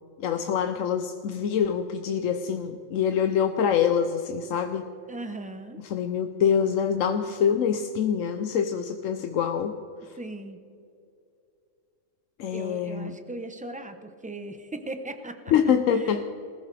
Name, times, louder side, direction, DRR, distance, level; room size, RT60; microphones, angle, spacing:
voice 1, 0.2-4.9 5.8-9.8 10.0-10.2 12.4-13.2 15.5-16.2, left 7 dB, 80° left, 7 dB, 1.0 m, -25 dB
voice 2, 5.1-5.8 10.2-10.6 12.5-16.2, right 2 dB, 10° right, 7 dB, 0.6 m, -38 dB
20.5 x 14.5 x 3.3 m, 2.5 s
omnidirectional pair, 1.3 m